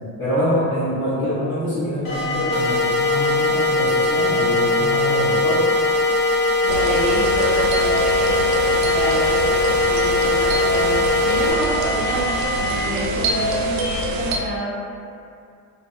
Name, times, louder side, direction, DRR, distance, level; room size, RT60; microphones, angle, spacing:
voice 1, 0.2-5.7, equal, 30° left, -16 dB, 1.0 m, -24 dB
sound 1, 2.1-12.8, equal, 55° left, 0.9 m, -26 dB
sound 2, 2.5-11.5, left 3 dB, 85° left, 0.6 m, -21 dB
voice 2, 6.6-8.3 8.6-14.8, equal, 20° right, -8 dB, 0.5 m, -29 dB
sound 3, 6.7-14.4, right 1 dB, 85° right, 0.5 m, -25 dB
2.6 x 2.1 x 2.5 m, 2.3 s
cardioid pair, 125°, 44 cm